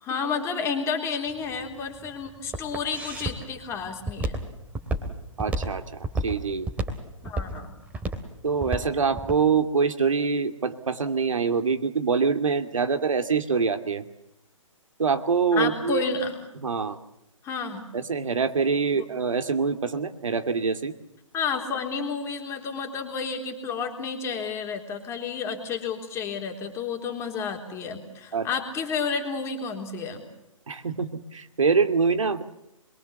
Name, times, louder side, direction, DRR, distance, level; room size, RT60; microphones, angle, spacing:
voice 1, 0.0-4.3 7.2-7.7 15.6-16.4 17.4-17.8 19.0-19.1 21.3-30.2, left 5 dB, 15° left, 3 dB, 3.7 m, -31 dB
Walk footsteps, 1.3-9.4, right 2 dB, 10° right, 2.7 m, -31 dB
voice 2, 5.4-6.7 8.4-14.0 15.0-16.0 16.6-17.0 17.9-20.9 28.3-28.5 30.7-32.4, right 5 dB, 70° right, 9 dB, 2.7 m, -25 dB
26.5 x 23.0 x 7.2 m, 0.87 s
figure-of-eight pair, 140°, 17 cm